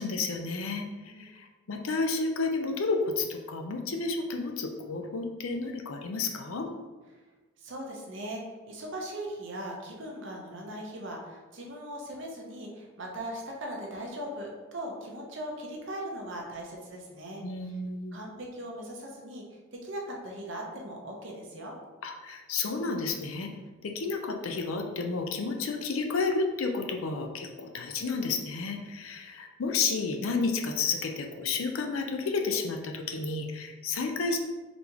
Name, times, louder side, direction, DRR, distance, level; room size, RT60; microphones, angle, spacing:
voice 1, 0.0-6.7 17.4-18.2 22.0-23.5 23.8-34.4, left 4 dB, 80° left, 3 dB, 0.5 m, -31 dB
voice 2, 1.0-1.4 7.6-17.4 18.1-19.4 19.7-21.8, right 1 dB, 60° right, 0 dB, 0.8 m, -39 dB
4.1 x 3.4 x 2.9 m, 1.3 s
head